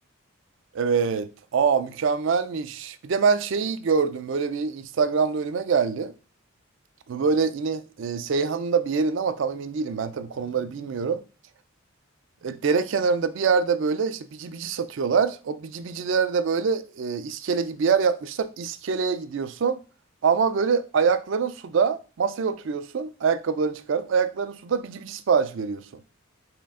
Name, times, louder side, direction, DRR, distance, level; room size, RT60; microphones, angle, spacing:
voice 1, 0.7-6.1 7.1-11.2 12.4-19.8 20.2-26.0, right 5 dB, 60° right, 0.4 m, -25 dB
4.3 x 3.2 x 3.6 m
head